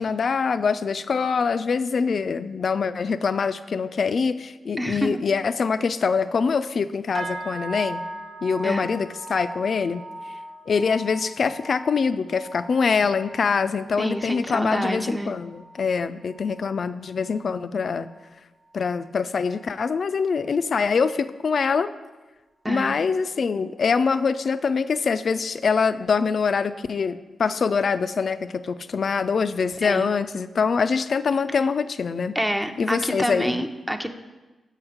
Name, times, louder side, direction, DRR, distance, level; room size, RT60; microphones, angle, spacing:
voice 1, 0.0-8.0 8.4-10.0 10.7-18.1 18.7-21.9 22.7-32.4 32.8-33.6, left 5 dB, 60° left, 12 dB, 0.3 m, -24 dB
voice 2, 4.8-5.2 8.6-8.9 14.0-15.3 22.6-22.9 29.8-30.1 32.3-34.1, equal, 10° right, 6 dB, 0.6 m, -27 dB
sound 1, 7.1-16.7 17.0-17.4 17.8-18.2 18.7-18.8, right 1 dB, 55° right, 0.5 m, -39 dB
7.1 x 4.7 x 4.9 m, 1.2 s
supercardioid pair, 45°, 0 cm